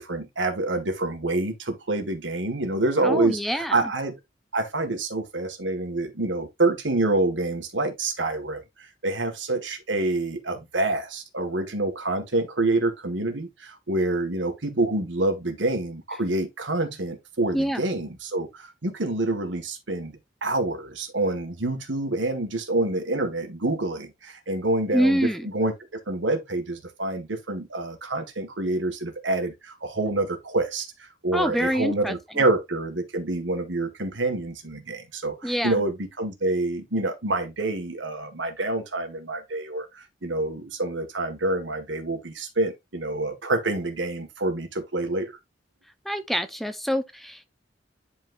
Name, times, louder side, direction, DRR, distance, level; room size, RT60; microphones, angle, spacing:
voice 1, 0.0-4.2 4.5-45.4, right 2 dB, 80° right, 1.8 m, -27 dB
voice 2, 3.0-3.9 17.5-17.8 24.9-25.5 31.3-32.1 35.4-35.8 46.0-47.5, equal, ahead, 0.8 m, -25 dB
10.5 x 4.3 x 2.6 m
head